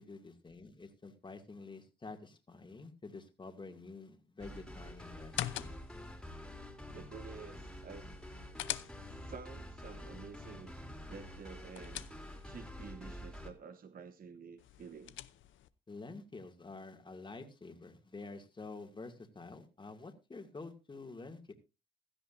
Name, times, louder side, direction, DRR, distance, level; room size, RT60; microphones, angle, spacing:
voice 1, 0.0-5.7 15.9-21.5, left 3 dB, 25° left, 4 dB, 2.3 m, -49 dB
sound 1, 4.4-13.5, left 1 dB, 5° left, 2.9 m, -48 dB
sound 2, 5.2-6.1 8.1-9.4 11.3-12.6 14.6-15.7, left 13 dB, 75° left, 0.7 m, -43 dB
voice 2, 6.9-8.2 9.0-10.7 11.1-12.0 12.4-15.2, right 6 dB, 45° right, 9 dB, 1.1 m, -50 dB
16.0 x 13.0 x 2.6 m, 0.28 s
cardioid pair, 90°, 20 cm